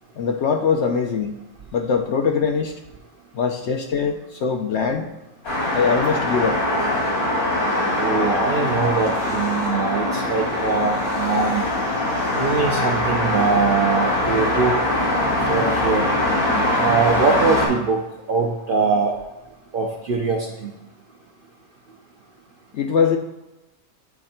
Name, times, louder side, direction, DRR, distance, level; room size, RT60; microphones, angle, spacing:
voice 1, 0.2-1.3 1.7-2.8 3.3-5.1 5.7-6.6 22.7-23.2, left 6 dB, 65° left, 5 dB, 0.7 m, -22 dB
sound 1, 5.4-17.7, left 1 dB, 90° left, 2.6 m, -22 dB
voice 2, 8.0-11.7 12.4-14.7 15.5-16.1 16.8-18.0 18.3-19.1 19.7-20.7, right 4 dB, 55° right, 1 dB, 0.6 m, -22 dB
9.3 x 3.3 x 4.2 m, 1.0 s
omnidirectional pair, 1.5 m